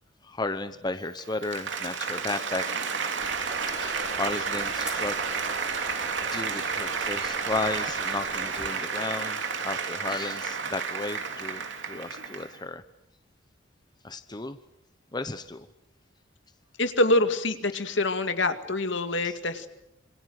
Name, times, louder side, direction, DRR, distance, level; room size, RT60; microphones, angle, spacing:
voice 1, 0.2-2.8 3.7-5.2 6.3-9.4 9.6-12.8 14.0-14.6 15.1-15.7 17.7-17.8 19.2-19.4, left 2 dB, 20° left, 10 dB, 0.9 m, -34 dB
Applause, 1.0-12.6, right 5 dB, 65° right, 3.1 m, -31 dB
sound 1, 3.2-8.7, equal, 5° right, 2.9 m, -46 dB
voice 2, 16.8-19.7, left 2 dB, 70° left, 8 dB, 2.2 m, -25 dB
27.0 x 25.5 x 7.8 m, 0.82 s
head